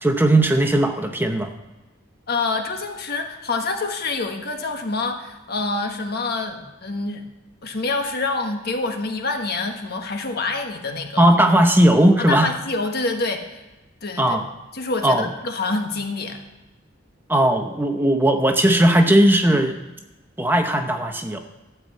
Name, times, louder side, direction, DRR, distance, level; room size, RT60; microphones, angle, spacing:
voice 1, 0.0-1.5 11.2-12.5 14.2-14.4 15.0-15.3 17.3-19.8 20.4-21.4, right 1 dB, 10° right, 5 dB, 0.8 m, -17 dB
voice 2, 2.3-7.2 7.6-11.2 12.2-13.6 14.0-14.4 14.7-16.4, left 3 dB, 50° left, 4 dB, 1.5 m, -26 dB
13.0 x 5.9 x 8.3 m, 1.1 s
head